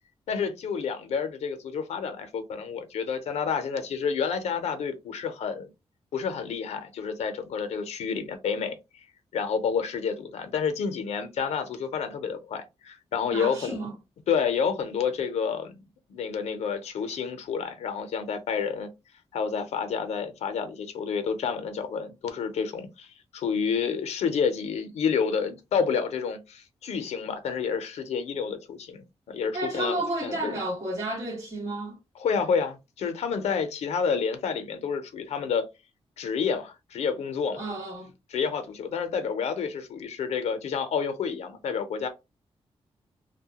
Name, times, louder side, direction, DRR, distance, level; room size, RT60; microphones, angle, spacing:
voice 1, 0.3-5.7 6.1-9.0 9.3-13.8 14.3-15.7 16.1-18.9 19.3-23.1 23.3-30.5 32.2-35.6 36.2-37.6 38.3-42.1, left 6 dB, 90° left, 0.6 m, -29 dB
voice 2, 13.3-13.9 29.5-32.0 37.5-38.1, right 2 dB, 35° right, 1.6 m, -31 dB
2.7 x 2.2 x 2.8 m
wide cardioid pair, 150°, 11 cm